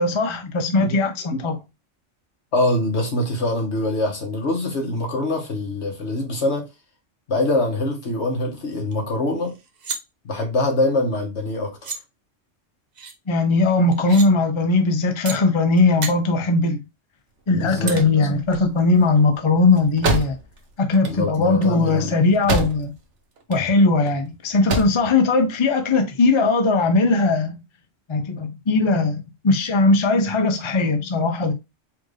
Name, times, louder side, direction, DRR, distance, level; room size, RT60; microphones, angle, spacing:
voice 1, 0.0-1.6 13.3-16.8 17.5-20.4 20.8-22.9 23.5-27.5 28.1-31.5, left 3 dB, 35° left, 0.5 m, -19 dB
voice 2, 2.5-6.7 7.3-9.5 10.2-12.0 17.5-18.0 21.1-22.2, left 2 dB, 65° left, 1.5 m, -24 dB
sound 1, 8.9-9.0 9.3-10.0 11.4-11.5 11.8-12.0 12.9-13.1 13.9-14.3 15.3-15.4 15.8-16.1 17.9-18.0, right 5 dB, 45° right, 0.7 m, -31 dB
sound 2, 17.5-23.1 23.4-24.1 24.5-25.1, right 2 dB, 70° right, 1.1 m, -28 dB
4.5 x 2.6 x 3.1 m
omnidirectional pair, 1.3 m